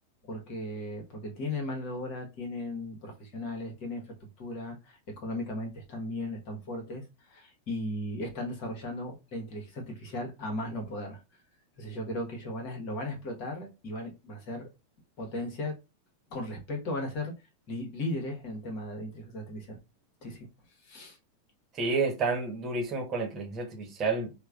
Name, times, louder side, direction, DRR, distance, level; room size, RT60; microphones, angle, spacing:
voice 1, 0.2-4.0 4.4-7.0 7.3-11.2 11.8-14.7 15.2-15.7 16.3-17.3 17.7-19.8 20.2-20.5 20.8-21.2, left 1 dB, 45° left, 1.3 m, -36 dB
voice 2, 21.7-24.4, right 4 dB, 30° right, 1.2 m, -30 dB
4.5 x 2.3 x 2.4 m
figure-of-eight pair, 90°, 0 cm